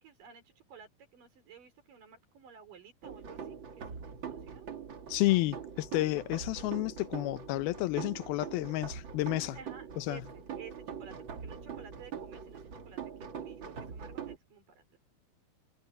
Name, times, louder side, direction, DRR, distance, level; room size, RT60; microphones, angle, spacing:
voice 1, 0.0-4.7 9.5-15.0, right 7 dB, 60° right, 5.8 m, -54 dB
sound 1, 3.0-14.4, right 7 dB, 40° right, 2.1 m, -43 dB
voice 2, 5.1-9.6 10.0-10.2, left 18 dB, 80° left, 2.6 m, -31 dB
omnidirectional pair, 4.4 m